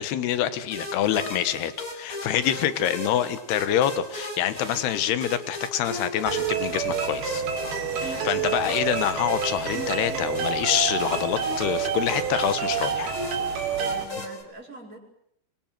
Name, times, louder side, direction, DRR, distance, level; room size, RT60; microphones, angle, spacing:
voice 1, 0.0-7.4 8.0-13.2, left 11 dB, 80° left, 12 dB, 3.5 m, -26 dB
sound 1, 0.7-14.4, left 1 dB, 20° left, 5.5 m, -37 dB
sound 2, 6.3-14.0, right 7 dB, 70° right, 4.6 m, -28 dB
voice 2, 13.4-15.0, right 1 dB, 20° right, -1 dB, 6.0 m, -42 dB
26.0 x 25.5 x 7.7 m, 0.70 s
omnidirectional pair, 4.6 m